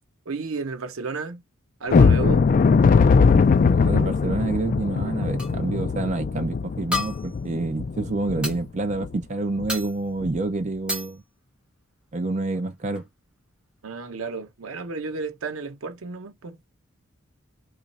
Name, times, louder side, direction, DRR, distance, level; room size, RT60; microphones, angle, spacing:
voice 1, 0.3-1.4 1.8-2.5 13.8-16.6, right 4 dB, 85° right, 0.7 m, -32 dB
sound 1, 1.9-8.6 9.0-9.1 9.6-9.7 10.2-10.4, left 5 dB, 40° left, 0.3 m, -20 dB
voice 2, 3.7-11.2 12.1-13.0, right 2 dB, 35° right, 0.5 m, -28 dB
sound 2, 5.4-5.6 6.9-7.5 8.4-8.6 9.7-10.1 10.9-11.2 12.5-12.6 13.0-13.1, left 2 dB, 5° right, 1.0 m, -31 dB
3.0 x 2.4 x 4.0 m
head